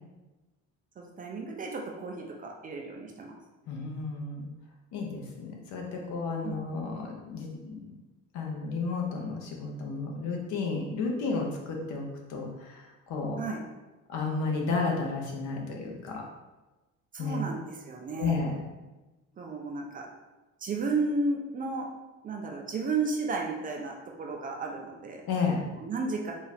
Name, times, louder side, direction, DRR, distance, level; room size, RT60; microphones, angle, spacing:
voice 1, 1.0-3.4 6.4-6.8 13.4-13.6 17.1-18.4 19.4-20.1 20.6-21.9 22.2-25.2 25.8-26.3, right 3 dB, 30° right, 0 dB, 0.4 m, -33 dB
voice 2, 3.7-4.5 4.9-7.9 8.3-13.4 14.1-16.2 17.2-17.4 18.2-18.6 25.3-25.6, left 4 dB, 70° left, 1 dB, 0.9 m, -32 dB
3.9 x 2.4 x 4.0 m, 1.1 s
cardioid pair, 160°, 31 cm